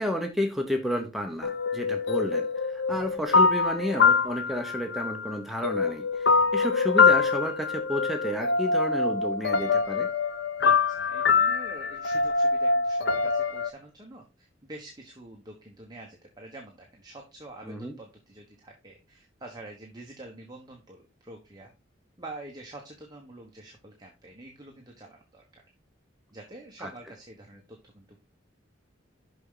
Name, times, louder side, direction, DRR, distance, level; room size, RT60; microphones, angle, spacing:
voice 1, 0.0-10.1 17.6-17.9 26.8-26.9, equal, ahead, 3 dB, 0.9 m, -31 dB
sound 1, 1.4-5.3 5.6-13.7, left 4 dB, 70° left, 0.7 m, -24 dB
voice 2, 10.6-21.7 22.2-25.6 26.3-27.6 27.9-28.0, right 2 dB, 20° right, 0 dB, 1.2 m, -46 dB
6.9 x 6.0 x 3.8 m, 0.26 s
head